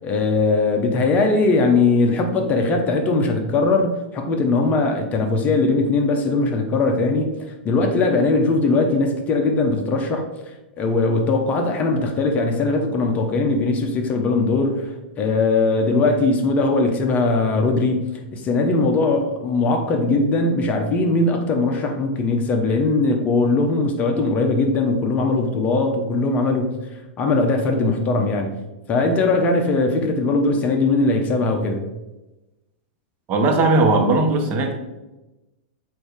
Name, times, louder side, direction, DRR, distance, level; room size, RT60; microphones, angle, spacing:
voice 1, 0.0-7.4 7.6-10.3 10.8-26.8 27.2-28.5 28.9-31.8, left 3 dB, 30° left, 0.9 m, -20 dB
voice 2, 33.3-34.7, right 2 dB, 35° right, 1.2 m, -18 dB
7.7 x 2.8 x 5.1 m
hypercardioid pair, 125°, 5 cm